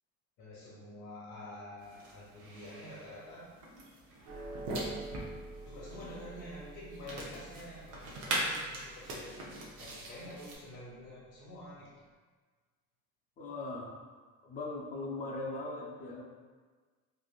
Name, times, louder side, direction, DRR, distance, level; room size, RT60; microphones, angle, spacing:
voice 1, 0.4-3.5 5.6-11.9, left 1 dB, 75° left, -7 dB, 0.9 m, -48 dB
sound 1, 1.8-10.6, right 1 dB, 90° right, 0.7 m, -41 dB
sound 2, 4.3-10.8, right 2 dB, 50° right, 0.5 m, -49 dB
voice 2, 13.4-14.0 14.4-16.2, left 2 dB, 30° left, -1 dB, 0.4 m, -39 dB
3.1 x 2.5 x 2.3 m, 1.5 s
cardioid pair, 160°, 30 cm